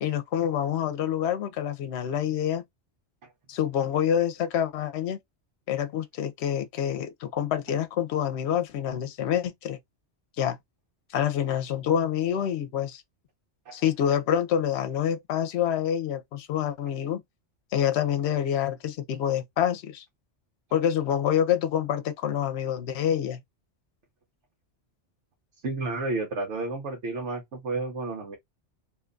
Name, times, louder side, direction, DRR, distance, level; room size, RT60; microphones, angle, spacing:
voice 1, 0.0-2.6 3.5-5.2 5.7-9.8 10.4-10.6 11.1-13.0 13.7-17.2 17.7-20.0 20.7-23.4, left 9 dB, 75° left, 0.9 m, -27 dB
voice 2, 25.6-28.4, right 3 dB, 90° right, 1.2 m, -31 dB
2.7 x 2.3 x 3.7 m
omnidirectional pair, 1.2 m